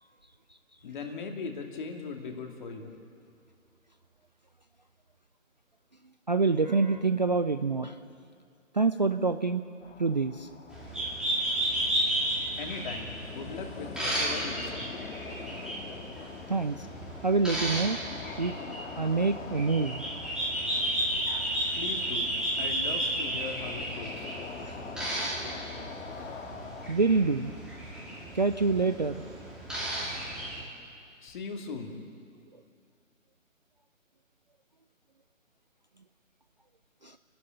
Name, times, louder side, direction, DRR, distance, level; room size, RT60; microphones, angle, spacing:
voice 1, 0.8-2.9 12.6-14.9 21.7-22.3 22.6-24.3 31.2-32.0, left 4 dB, 35° left, 3 dB, 2.4 m, -39 dB
voice 2, 6.3-8.0 8.7-9.6 10.0-10.5 16.5-16.9 17.2-18.0 18.4-18.5 19.0-20.1 24.7-24.8 25.4-25.6 26.9-27.5 28.3-29.2 37.0-37.2, right 4 dB, 35° right, 10 dB, 0.4 m, -26 dB
sound 1, 9.8-26.9, left 5 dB, 60° left, 1.8 m, -44 dB
sound 2, 10.7-30.6, right 1 dB, ahead, 2.3 m, -33 dB
29.0 x 12.5 x 8.8 m, 2.3 s
figure-of-eight pair, 155°, 41 cm